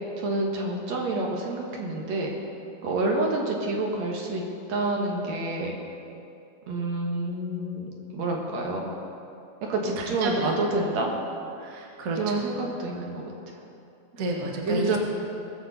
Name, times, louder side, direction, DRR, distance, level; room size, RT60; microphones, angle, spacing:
voice 1, 0.2-2.3 2.8-4.4 4.7-5.8 6.7-8.9 9.6-11.1 12.2-13.6 14.7-15.0, right 2 dB, 65° right, 0 dB, 2.4 m, -28 dB
voice 2, 10.0-10.6 11.6-12.5 14.2-15.0, right 1 dB, 50° right, -1 dB, 1.0 m, -31 dB
20.0 x 7.3 x 4.0 m, 2.7 s
omnidirectional pair, 3.6 m